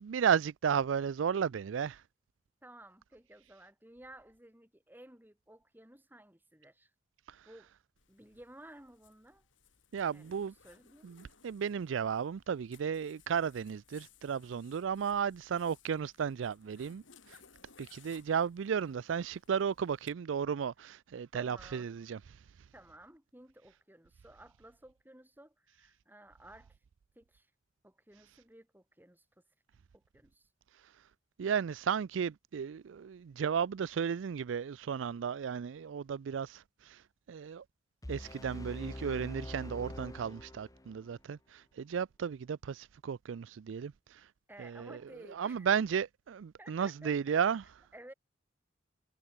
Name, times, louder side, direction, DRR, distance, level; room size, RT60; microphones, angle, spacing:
voice 1, 0.0-2.0 7.3-7.5 9.9-10.5 11.0-17.4 17.8-22.2 31.4-37.0 37.3-37.6 38.1-44.3 44.6-45.0 45.3-47.6, right 7 dB, 85° right, 0.4 m, -34 dB
voice 2, 2.6-6.9 7.4-7.7 8.1-9.5 10.1-11.1 21.3-21.9 22.7-26.8 27.2-27.5 27.8-29.3 29.9-30.5 38.2-38.4 44.5-45.7 46.6-47.4 47.9-48.1, right 1 dB, 10° right, 6.0 m, -55 dB
Zipper (clothing), 8.0-20.1, left 7 dB, 90° left, 3.8 m, -63 dB
sound 1, 38.0-41.1, left 1 dB, 20° left, 1.1 m, -44 dB
head